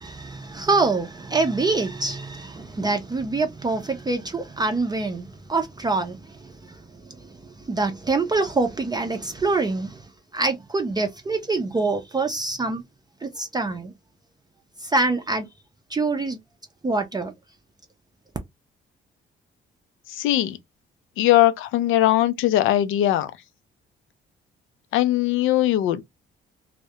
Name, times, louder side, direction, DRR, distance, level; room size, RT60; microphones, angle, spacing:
voice 1, 0.0-6.5 7.7-10.0 10.3-12.8 13.2-13.9 14.8-15.5 15.9-16.4 16.8-17.3, right 3 dB, 20° right, 0.4 m, -25 dB
voice 2, 20.1-20.6 21.2-23.3 24.9-26.0, left 13 dB, 90° left, 0.4 m, -20 dB
2.3 x 2.1 x 2.7 m
cardioid pair, 90°, 20 cm